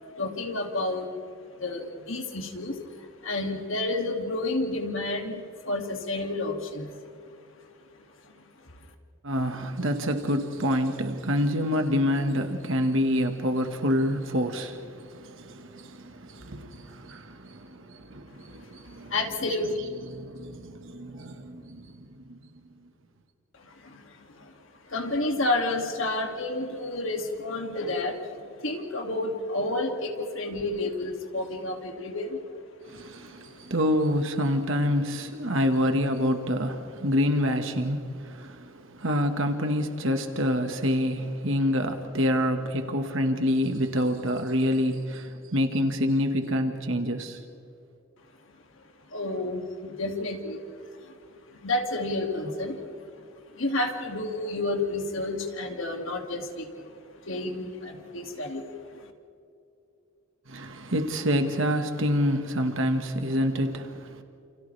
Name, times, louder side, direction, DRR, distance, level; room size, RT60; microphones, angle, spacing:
voice 1, 0.2-1.1 1.6-7.2 8.2-8.3 19.1-19.8 23.5-32.4 49.1-50.6 50.9-51.2 51.5-53.3 53.5-56.9 57.2-59.1, left 2 dB, 70° left, 2.5 m, -31 dB
voice 2, 9.2-14.9 15.2-16.0 16.2-17.6 17.9-21.8 32.9-38.0 38.2-38.5 39.0-47.4 60.5-64.2, equal, 65° right, 1.7 m, -27 dB
29.5 x 29.0 x 3.4 m
head